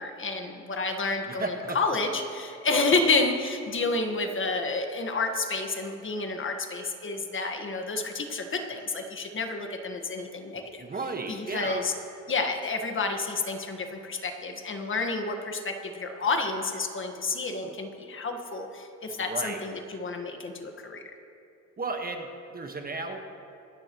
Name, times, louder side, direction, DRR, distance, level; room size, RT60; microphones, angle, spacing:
voice 1, 0.0-10.8 11.3-11.9 12.3-21.0, left 3 dB, 40° left, 4 dB, 1.6 m, -30 dB
voice 2, 1.3-1.8 10.8-11.8 19.2-19.6 21.8-23.2, right 3 dB, 30° right, 4 dB, 1.4 m, -34 dB
26.5 x 10.0 x 3.1 m, 2.6 s
cardioid pair, 90°, 30 cm